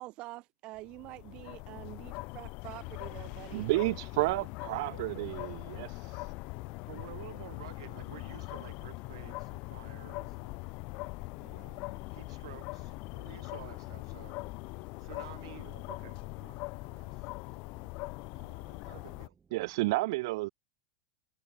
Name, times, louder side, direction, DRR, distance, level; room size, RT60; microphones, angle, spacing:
voice 1, 0.0-3.7, right 19 dB, 35° right, 0.7 m, -46 dB
sound 1, 0.8-19.3, left 27 dB, 35° left, 0.4 m, -42 dB
voice 2, 3.5-6.3 19.5-20.5, right 21 dB, 50° right, 1.1 m, -31 dB
sound 2, 4.0-19.9, right 6 dB, 15° right, 5.3 m, -66 dB
voice 3, 4.9-5.3 6.9-10.6 11.4-14.4 15.0-16.6 16.9-17.3 18.3-19.4, right 14 dB, 70° right, 3.5 m, -51 dB
supercardioid pair, 170°, 3 cm